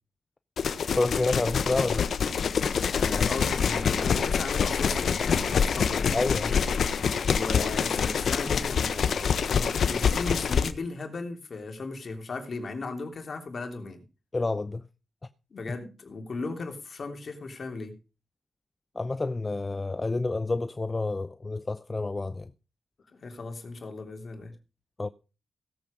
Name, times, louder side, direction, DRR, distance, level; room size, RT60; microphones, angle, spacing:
sound 1, 0.6-10.7, left 6 dB, 75° left, 1.1 m, -26 dB
voice 1, 0.9-2.1 6.1-6.6 14.3-14.9 18.9-22.5 25.0-25.1, left 3 dB, 30° left, 0.6 m, -29 dB
voice 2, 2.9-6.1 7.3-14.0 15.5-17.9 23.1-24.5, left 3 dB, 55° left, 3.2 m, -37 dB
17.0 x 7.6 x 5.2 m
cardioid pair, 75°, 0 cm